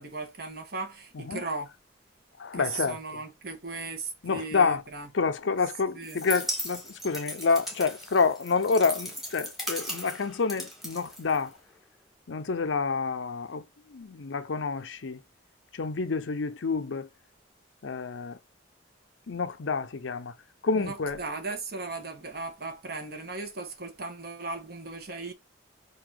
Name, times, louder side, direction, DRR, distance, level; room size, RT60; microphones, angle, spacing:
voice 1, 0.0-1.7 2.5-5.1 5.9-6.2 20.7-25.3, right 3 dB, 50° right, 1.2 m, -37 dB
voice 2, 2.4-3.2 4.2-4.8 5.1-11.6 12.3-15.2 15.7-17.1 17.8-18.4 19.3-20.3 20.6-21.2, left 4 dB, 75° left, 0.6 m, -28 dB
sound 1, 6.0-11.7, equal, ahead, 1.2 m, -37 dB
4.0 x 2.6 x 4.6 m
head